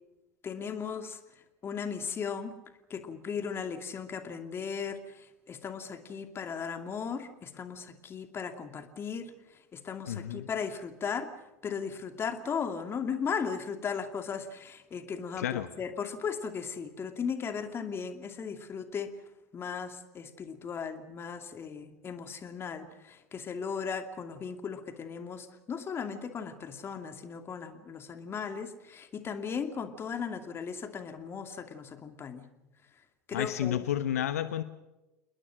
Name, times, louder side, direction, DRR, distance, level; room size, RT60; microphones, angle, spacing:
voice 1, 0.4-1.2 1.6-2.5 2.9-11.3 11.6-19.1 19.5-32.5 33.3-33.8, left 6 dB, 30° left, 7 dB, 2.5 m, -37 dB
voice 2, 10.1-10.5 15.4-15.7 33.3-34.6, left 11 dB, 75° left, 12 dB, 1.0 m, -31 dB
29.0 x 21.0 x 6.4 m, 1.0 s
figure-of-eight pair, 80°, 8 cm